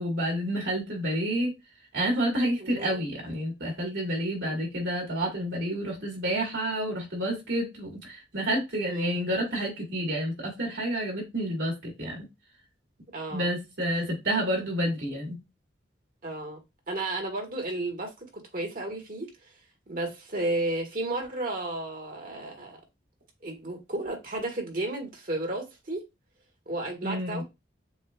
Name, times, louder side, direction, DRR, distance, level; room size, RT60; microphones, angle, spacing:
voice 1, 0.0-1.5 1.9-12.2 13.3-15.4 27.0-27.4, right 1 dB, 65° right, 2.2 m, -29 dB
voice 2, 2.6-3.0 4.5-4.6 8.8-9.2 13.1-13.5 16.2-19.5 19.9-22.8 23.4-26.0 26.7-27.4, right 2 dB, 45° right, 1.4 m, -33 dB
6.9 x 2.4 x 2.3 m
head